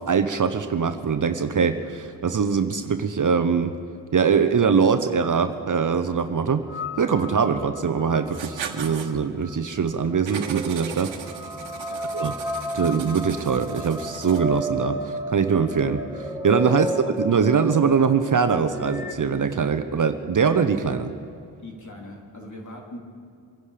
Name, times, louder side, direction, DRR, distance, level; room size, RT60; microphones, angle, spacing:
voice 1, 0.0-3.7 4.1-6.6 7.0-11.1 12.1-12.3 12.7-21.1, right 6 dB, 45° right, 9 dB, 0.9 m, -22 dB
sound 1, 6.7-19.1, equal, 5° right, 2.0 m, -33 dB
Writing, 8.3-9.1 10.3-14.6, right 7 dB, 80° right, 1.3 m, -38 dB
voice 2, 21.6-23.0, left 1 dB, 40° left, 0 dB, 3.5 m, -41 dB
24.5 x 10.5 x 5.1 m, 2.5 s
cardioid pair, 75°, 45 cm